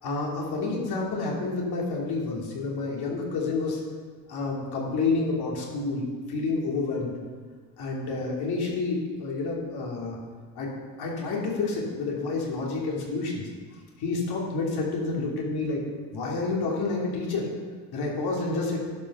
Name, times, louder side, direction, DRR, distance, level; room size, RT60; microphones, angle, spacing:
voice 1, 0.0-3.8 4.3-7.2 7.8-10.2 10.5-10.7 11.0-13.5 14.0-15.8 16.1-17.5 17.9-18.8, left 3 dB, 60° left, -2 dB, 3.2 m, -29 dB
11.5 x 6.0 x 5.6 m, 1.5 s
supercardioid pair, 90°, 43 cm